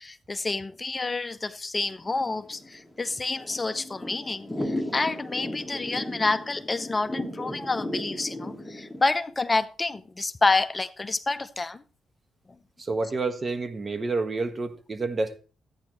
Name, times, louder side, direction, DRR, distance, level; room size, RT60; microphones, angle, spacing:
voice 1, 0.0-11.8, left 3 dB, 30° left, 0.7 m, -28 dB
Thunder / Rain, 2.0-9.1, left 1 dB, 10° left, 2.1 m, -35 dB
voice 2, 12.8-15.4, right 3 dB, 40° right, 1.4 m, -29 dB
13.5 x 9.6 x 3.1 m
supercardioid pair, 60°, 0 cm